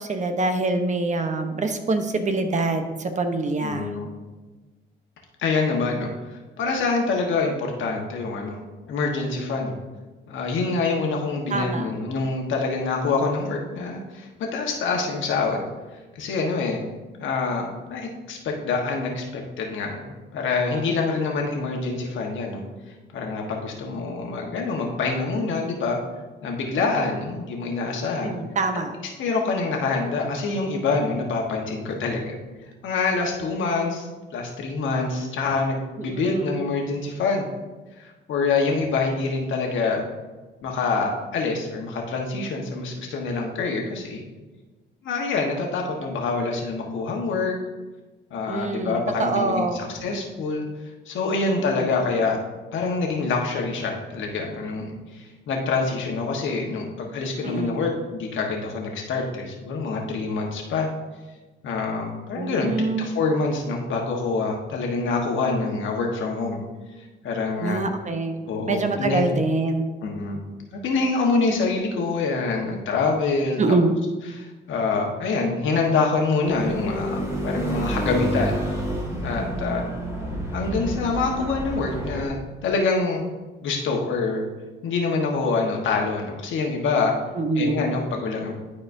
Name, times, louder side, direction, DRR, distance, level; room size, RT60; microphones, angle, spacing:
voice 1, 0.0-3.9 11.5-11.9 20.9-21.0 28.2-28.9 36.1-36.6 48.5-49.9 51.8-51.9 57.4-57.8 62.4-63.1 67.6-68.4 68.7-69.9 73.6-74.0 87.4-87.8, right 3 dB, 35° right, 7 dB, 0.8 m, -25 dB
voice 2, 3.6-4.1 5.4-6.1 6.6-8.6 8.9-9.8 10.3-15.6 16.1-16.8 17.2-22.6 23.1-26.0 26.4-28.4 29.2-32.4 32.8-37.5 38.0-40.0 40.6-44.2 45.0-47.6 48.3-50.6 51.1-52.4 52.7-60.9 61.6-62.7 63.0-66.6 67.2-67.8 68.5-69.3 70.0-70.4 70.8-73.6 74.3-78.6 79.2-79.9 80.5-83.2 83.6-84.4 84.8-87.1 87.5-88.5, left 4 dB, 75° left, 1 dB, 1.3 m, -26 dB
sound 1, 76.5-82.3, right 1 dB, 15° right, 2.1 m, -29 dB
11.5 x 4.3 x 2.6 m, 1.2 s
cardioid pair, 90°, 20 cm